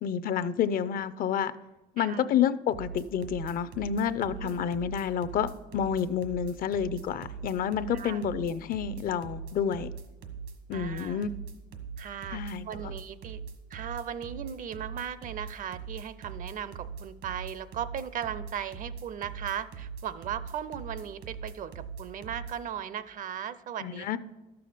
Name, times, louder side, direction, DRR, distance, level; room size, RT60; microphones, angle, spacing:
voice 1, 0.0-1.5 2.0-9.9 10.7-11.3 12.3-12.9 23.8-24.2, left 8 dB, 60° left, 15 dB, 0.5 m, -29 dB
sound 1, 2.7-22.6, right 6 dB, 80° right, 1.5 m, -41 dB
voice 2, 4.3-4.7 7.9-8.2 10.7-11.2 12.0-13.4 13.7-24.2, right 9 dB, 50° right, 15 dB, 0.5 m, -37 dB
12.0 x 7.0 x 5.0 m, 1.1 s
cardioid pair, 110°, 17 cm